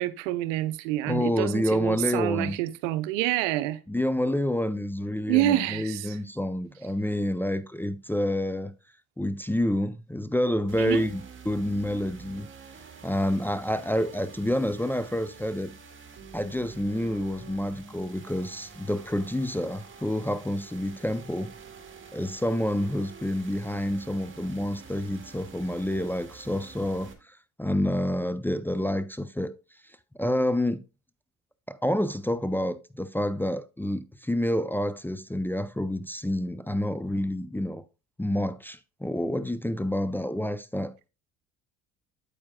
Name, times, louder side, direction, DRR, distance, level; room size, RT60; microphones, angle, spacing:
voice 1, 0.0-3.8 5.3-6.2 10.8-11.1, right 15 dB, 80° right, 0.7 m, -27 dB
voice 2, 1.1-2.6 3.9-8.7 9.2-12.5 13.0-15.7 16.3-21.5 22.1-27.1 27.6-29.5 30.2-30.8 31.7-37.8 38.2-40.9, left 1 dB, 5° left, 0.5 m, -28 dB
sound 1, 10.7-27.1, right 5 dB, 30° right, 1.9 m, -47 dB
8.6 x 8.6 x 2.3 m
hypercardioid pair, 65°, 38 cm